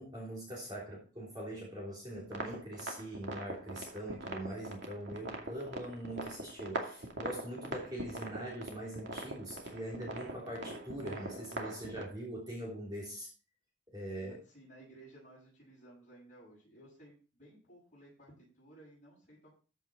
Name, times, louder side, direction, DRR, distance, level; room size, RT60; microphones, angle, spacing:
voice 1, 0.0-13.3 13.9-14.4, right 1 dB, 20° right, -5 dB, 3.3 m, -42 dB
sound 1, 2.2-12.0, right 2 dB, 70° right, 2.3 m, -42 dB
voice 2, 14.2-19.5, right 1 dB, 40° left, -8 dB, 7.2 m, -57 dB
14.0 x 6.5 x 4.3 m, 0.37 s
head